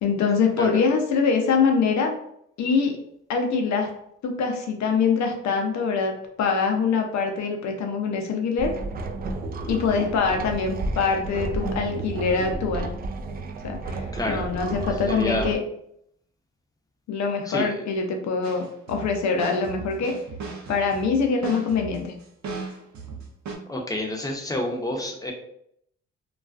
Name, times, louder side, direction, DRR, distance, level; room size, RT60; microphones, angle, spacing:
voice 1, 0.0-2.1 2.6-2.9 3.3-3.9 4.2-8.7 9.7-12.9 13.6-15.6 17.1-18.6 18.9-20.1 20.7-22.1, left 5 dB, 65° left, 3 dB, 0.6 m, -24 dB
sound 1, 8.6-15.6, right 2 dB, 30° right, 0.4 m, -32 dB
voice 2, 14.1-14.5 15.1-15.5 17.5-17.7 23.7-25.3, left 1 dB, 10° left, 0 dB, 0.7 m, -28 dB
sound 2, 18.4-23.5, right 4 dB, 65° right, 0.6 m, -37 dB
2.3 x 2.3 x 2.4 m, 0.72 s
supercardioid pair, 60°, 31 cm